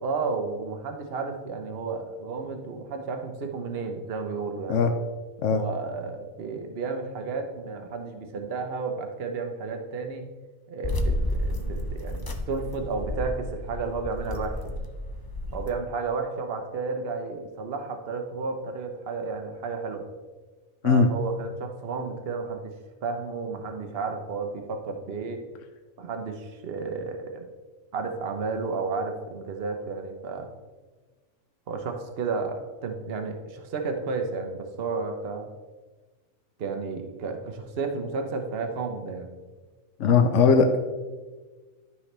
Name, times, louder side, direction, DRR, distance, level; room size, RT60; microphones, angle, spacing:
voice 1, 0.0-4.9 5.5-10.3 10.7-14.9 15.5-20.1 20.8-22.7 23.0-25.4 26.0-27.5 27.9-30.5 31.7-35.5 36.6-39.3, right 4 dB, 50° right, 5 dB, 1.1 m, -32 dB
sound 1, 10.8-15.7, left 1 dB, 25° left, 0.5 m, -31 dB
voice 2, 40.0-40.8, left 5 dB, 70° left, 6 dB, 1.0 m, -19 dB
12.0 x 5.5 x 3.3 m, 1.3 s
omnidirectional pair, 1.4 m